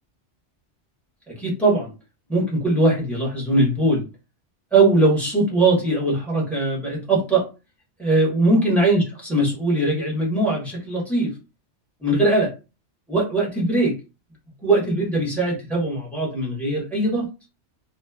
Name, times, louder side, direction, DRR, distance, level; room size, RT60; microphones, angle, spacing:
voice 1, 1.3-1.9 2.3-4.1 4.7-7.4 8.0-11.3 12.0-12.5 13.1-13.9 14.6-17.3, right 2 dB, ahead, -4 dB, 1.0 m, -20 dB
2.9 x 2.2 x 2.3 m, 0.30 s
omnidirectional pair, 1.2 m